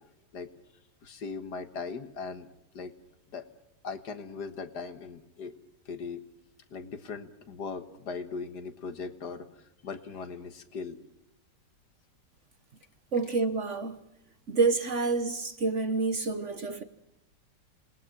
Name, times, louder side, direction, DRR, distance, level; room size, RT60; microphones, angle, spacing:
voice 1, 1.0-2.5 2.7-2.9 3.3-3.5 3.8-5.5 5.9-6.2 6.7-11.0, left 5 dB, 65° left, 1.9 m, -39 dB
voice 2, 13.1-14.0 14.5-16.8, right 4 dB, 45° right, 1.3 m, -28 dB
27.5 x 20.0 x 6.0 m
omnidirectional pair, 2.0 m